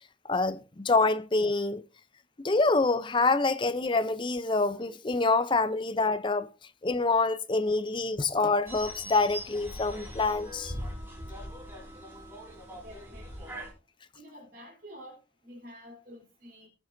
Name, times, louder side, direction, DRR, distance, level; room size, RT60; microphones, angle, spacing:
voice 1, 0.2-1.8 2.4-6.5 6.8-10.7, left 3 dB, 25° left, 0.5 m, -26 dB
sound 1, 8.7-13.7, equal, 15° right, 3.7 m, -41 dB
voice 2, 12.7-13.6 14.1-15.2 15.4-16.7, equal, 55° right, 3.5 m, -49 dB
18.0 x 7.8 x 2.6 m
head